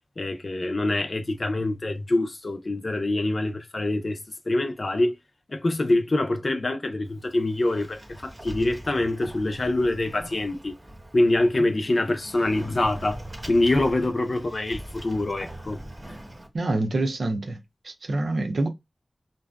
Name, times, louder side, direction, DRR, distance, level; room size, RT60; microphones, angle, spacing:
voice 1, 0.2-4.2 4.5-5.2 5.5-10.7 11.1-13.2 13.5-15.8, left 2 dB, 55° left, 0.5 m, -25 dB
Sliding door, 7.0-16.5, right 1 dB, 25° right, 0.9 m, -42 dB
voice 2, 16.5-17.6 17.8-18.7, right 2 dB, 80° right, 0.6 m, -26 dB
2.6 x 2.2 x 2.3 m
wide cardioid pair, 65°, 0 cm